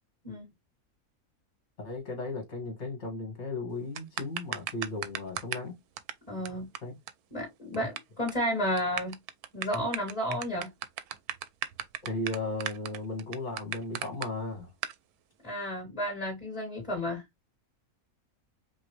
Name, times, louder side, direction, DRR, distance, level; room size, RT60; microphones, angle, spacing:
voice 1, 1.8-5.8 6.8-7.0 12.0-14.7, left 2 dB, 50° left, 2.1 m, -36 dB
sound 1, 4.0-5.7 6.0-6.1 6.5-6.6 6.8-6.9 7.1-7.2 7.4-8.0 8.3-8.4 8.8-14.3 14.8-15.0, right 11 dB, 85° right, 1.1 m, -35 dB
voice 2, 6.3-6.7 7.3-9.2 9.5-10.7 15.4-17.2, equal, 25° left, 2.6 m, -32 dB
5.4 x 2.6 x 3.2 m
omnidirectional pair, 1.6 m